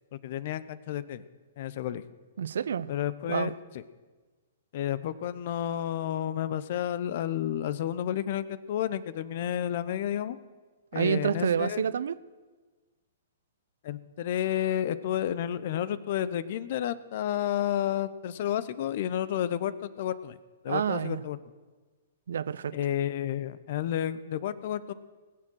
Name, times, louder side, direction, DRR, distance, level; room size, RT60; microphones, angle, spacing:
voice 1, 0.1-1.2 1.6-2.0 2.9-3.8 4.7-10.4 10.9-11.8 13.8-20.4 20.6-21.4 22.7-24.9, left 11 dB, 55° left, 16 dB, 0.8 m, -31 dB
voice 2, 2.4-2.9 3.3-3.5 10.9-12.2 20.7-21.2 22.3-22.7, right 7 dB, 70° right, 17 dB, 0.6 m, -28 dB
20.0 x 7.6 x 6.3 m, 1.3 s
hypercardioid pair, 120°, 0 cm